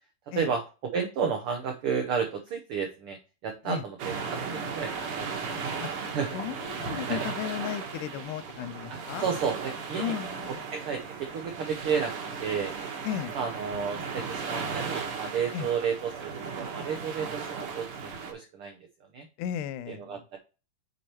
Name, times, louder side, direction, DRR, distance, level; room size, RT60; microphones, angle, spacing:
voice 1, 0.3-3.2 3.4-5.6 6.1-6.3 7.1-7.2 8.9-10.1 10.5-12.1 12.4-12.7 13.3-18.8 19.1-19.3 19.9-20.4, right 6 dB, 85° right, 1.2 m, -32 dB
sound 1, 4.0-18.3, right 5 dB, 55° right, 1.8 m, -36 dB
voice 2, 6.3-9.2 10.0-10.7 13.0-13.3 15.5-15.7 19.4-20.2, left 10 dB, 85° left, 2.1 m, -35 dB
8.1 x 4.5 x 2.9 m
omnidirectional pair, 3.6 m